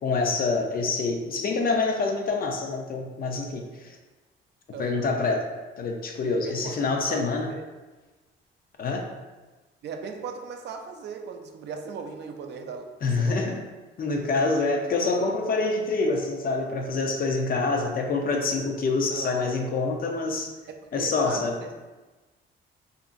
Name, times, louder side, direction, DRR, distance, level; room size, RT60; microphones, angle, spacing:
voice 1, 0.0-4.0 4.8-5.4 5.8-7.5 8.8-9.1 13.0-13.6 14.0-20.5 20.9-21.6, left 3 dB, 45° left, 2 dB, 0.5 m, -26 dB
voice 2, 4.7-5.1 6.2-7.2 7.5-7.6 9.8-12.9 13.2-13.5 18.5-18.6 19.1-19.5 20.9-21.7, right 6 dB, 60° right, 4 dB, 0.4 m, -38 dB
2.9 x 2.5 x 2.5 m, 1.2 s
cardioid pair, 90°, 20 cm